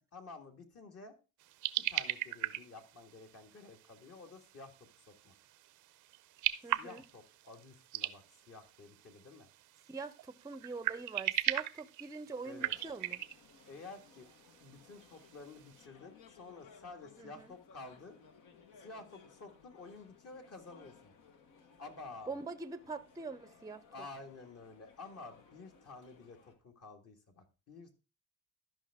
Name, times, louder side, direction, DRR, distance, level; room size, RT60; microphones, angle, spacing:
voice 1, 0.1-1.1 1.8-4.7 5.1-5.3 6.7-9.5 12.4-12.7 13.7-14.3 14.6-18.2 18.8-21.1 21.8-22.4 23.9-27.9, left 3 dB, 55° left, 1.9 m, -51 dB
sound 1, 1.4-15.8, right 14 dB, 80° right, 0.6 m, -40 dB
voice 2, 6.6-7.0 9.9-13.2 17.2-17.5 22.3-23.9, right 4 dB, 10° right, 0.5 m, -44 dB
sound 2, 12.4-26.6, left 6 dB, 80° left, 1.3 m, -61 dB
13.0 x 5.4 x 3.6 m
cardioid pair, 90°, 30 cm